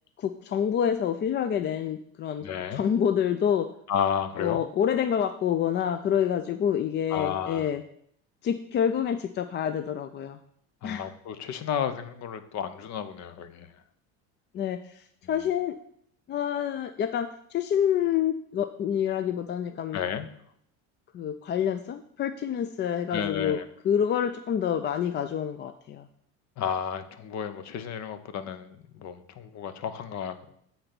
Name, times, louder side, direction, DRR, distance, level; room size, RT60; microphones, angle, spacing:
voice 1, 0.2-2.4 2.7-3.7 4.4-7.8 8.4-10.4 10.8-11.1 14.5-15.8 16.3-20.0 21.1-23.6 23.8-26.1, left 9 dB, 35° left, 10 dB, 0.4 m, -27 dB
voice 2, 2.4-2.8 3.9-4.6 7.1-7.7 10.8-13.7 19.9-20.3 23.1-23.6 26.6-30.5, left 8 dB, 55° left, 12 dB, 0.9 m, -32 dB
8.5 x 4.0 x 6.0 m, 0.68 s
supercardioid pair, 110°, 34 cm